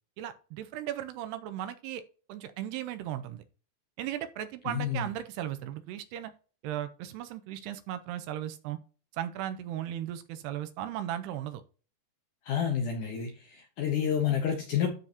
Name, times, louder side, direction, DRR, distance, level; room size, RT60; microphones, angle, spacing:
voice 1, 0.2-2.0 2.3-3.4 4.0-6.3 6.6-8.8 9.1-11.6, right 12 dB, 80° right, 2.5 m, -36 dB
voice 2, 4.7-5.1 12.5-14.9, left 8 dB, 70° left, 2.0 m, -29 dB
13.0 x 4.6 x 2.9 m
omnidirectional pair, 5.0 m